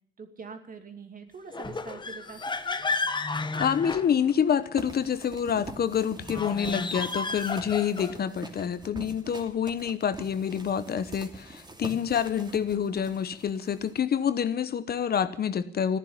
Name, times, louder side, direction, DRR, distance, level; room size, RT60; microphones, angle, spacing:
voice 1, 0.2-2.8, right 5 dB, 45° right, 6 dB, 2.5 m, -44 dB
sound 1, 1.5-4.6 6.2-8.3, left 3 dB, 25° left, 1.1 m, -32 dB
voice 2, 3.5-16.0, left 8 dB, 50° left, 13 dB, 1.0 m, -27 dB
sound 2, 4.8-14.3, right 2 dB, 20° right, 2.8 m, -44 dB
14.5 x 10.0 x 9.7 m, 0.66 s
cardioid pair, 90°, 20 cm